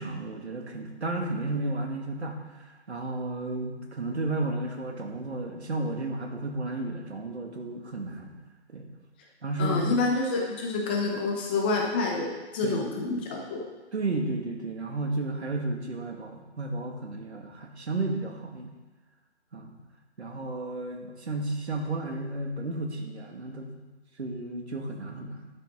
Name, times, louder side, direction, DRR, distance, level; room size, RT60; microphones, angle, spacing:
voice 1, 0.0-8.4 8.7-8.9 9.4-9.9 12.6-12.8 13.9-18.7 19.5-19.7 20.2-23.7 24.2-25.5, right 2 dB, 70° right, 2 dB, 2.3 m, -33 dB
voice 2, 9.6-13.6, left 3 dB, 10° left, 0 dB, 0.7 m, -28 dB
12.0 x 9.2 x 3.9 m, 1.2 s
figure-of-eight pair, 155°, 34 cm